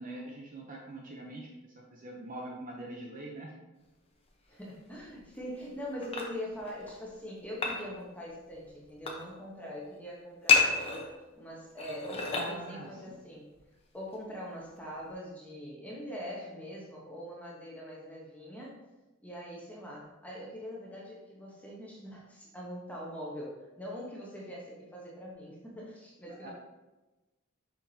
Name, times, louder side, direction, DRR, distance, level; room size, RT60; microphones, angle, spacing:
voice 1, 0.0-1.5 1.9-3.5 12.3-13.2 26.4-26.5, right 1 dB, 35° right, -1 dB, 0.7 m, -43 dB
voice 2, 4.5-11.1 11.4-13.5 13.9-18.8 19.2-26.5, equal, 5° left, -4 dB, 1.0 m, -43 dB
sound 1, 4.9-5.5 5.8-6.9 7.4-7.9 8.3-9.3 10.5-11.3 11.8-13.1 13.5-13.6 14.1-14.2 14.8-15.1, left 5 dB, 25° left, 0.9 m, -29 dB
7.1 x 5.9 x 2.8 m, 1.1 s
head